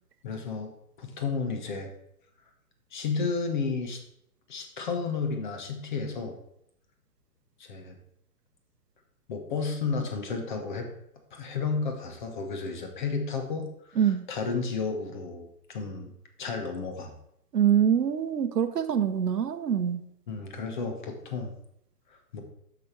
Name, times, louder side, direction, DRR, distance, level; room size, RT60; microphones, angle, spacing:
voice 1, 0.2-0.7 1.0-1.9 2.9-4.0 4.5-6.4 7.6-7.9 9.3-10.9 11.3-16.1 16.4-17.1 20.3-21.5 22.1-22.4, left 4 dB, 30° left, 5 dB, 1.1 m, -32 dB
voice 2, 14.0-14.3 17.5-20.0, right 8 dB, 85° right, 11 dB, 0.9 m, -24 dB
7.2 x 6.1 x 4.5 m, 0.76 s
hypercardioid pair, 155°, 46 cm